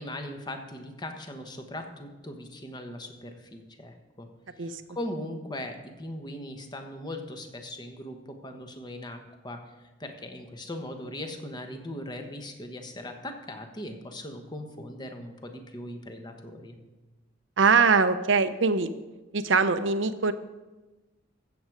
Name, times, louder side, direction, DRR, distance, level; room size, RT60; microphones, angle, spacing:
voice 1, 0.0-4.3 4.6-9.7 10.0-16.7, left 1 dB, 20° left, 5 dB, 1.2 m, -39 dB
voice 2, 17.6-18.9 19.3-20.3, right 4 dB, 70° right, 11 dB, 0.7 m, -22 dB
15.0 x 7.9 x 4.8 m, 1.1 s
head